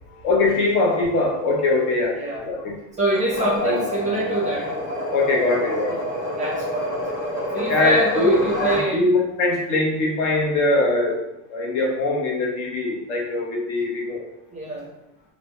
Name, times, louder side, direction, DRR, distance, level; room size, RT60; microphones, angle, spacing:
voice 1, 0.1-2.8 3.4-3.8 5.1-6.0 7.7-14.2, left 2 dB, 55° left, -1 dB, 0.7 m, -22 dB
voice 2, 2.1-2.5 3.0-4.7 5.6-5.7 6.3-7.1 7.5-9.1 14.5-14.9, right 1 dB, 20° right, -4 dB, 0.5 m, -25 dB
sound 1, 3.1-8.9, equal, 35° left, 0.9 m, -28 dB
2.1 x 2.0 x 2.9 m, 0.89 s
supercardioid pair, 135°, 36 cm